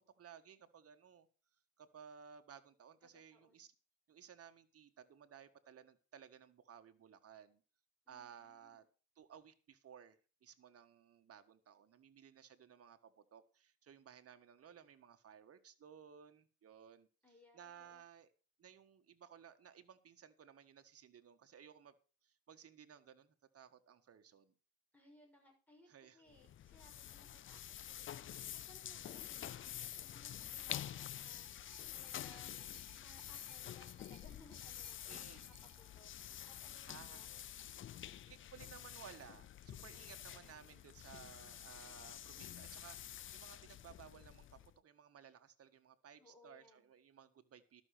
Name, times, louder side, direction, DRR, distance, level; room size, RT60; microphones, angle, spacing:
voice 1, 0.2-1.3 1.8-3.7 4.1-7.6 8.1-8.9 9.1-17.1 17.5-18.3 18.6-21.9 22.2-24.5 25.9-26.2 35.1-35.6 36.9-37.2 38.3-47.8, right 8 dB, 50° right, 8 dB, 1.6 m, -58 dB
voice 2, 3.0-3.6 8.1-8.9 17.2-18.0 24.9-36.1 36.4-37.5 39.9-40.7 46.2-46.9, left 1 dB, 5° left, 0 dB, 6.3 m, -65 dB
sound 1, 26.3-44.8, left 11 dB, 40° left, 0.4 m, -49 dB
sound 2, 31.0-36.8 37.7-37.8, right 14 dB, 90° right, 0.8 m, -69 dB
12.5 x 6.4 x 6.6 m, 0.36 s
cardioid pair, 90°, 30 cm